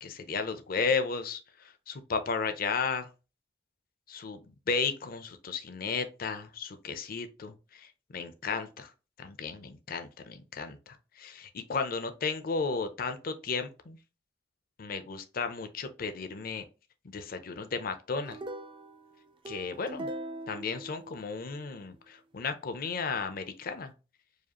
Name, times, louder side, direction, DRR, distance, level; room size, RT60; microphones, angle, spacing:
voice 1, 0.0-3.1 4.1-8.9 9.2-14.0 14.8-16.6 17.0-18.4 19.5-20.1 20.5-23.9, left 5 dB, 55° left, 0.6 m, -34 dB
sound 1, 18.2-21.7, right 1 dB, 30° right, 0.4 m, -42 dB
4.8 x 2.4 x 2.9 m
head